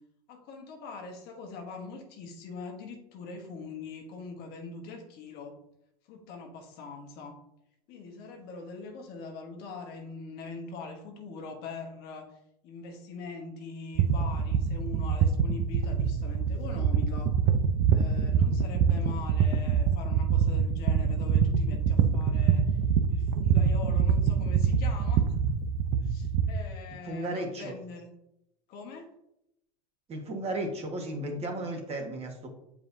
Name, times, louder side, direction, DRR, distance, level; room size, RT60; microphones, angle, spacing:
voice 1, 0.3-5.6 6.1-7.4 7.9-12.3 12.6-17.3 17.9-22.8 23.1-25.3 26.0-28.1 28.7-29.1, left 4 dB, 55° left, 3 dB, 1.4 m, -42 dB
sound 1, 14.0-26.6, right 7 dB, 60° right, 0.7 m, -25 dB
voice 2, 27.0-27.7 30.1-32.5, right 1 dB, 30° right, 1 dB, 1.6 m, -34 dB
7.3 x 4.8 x 2.7 m, 0.81 s
hypercardioid pair, 100°, 20 cm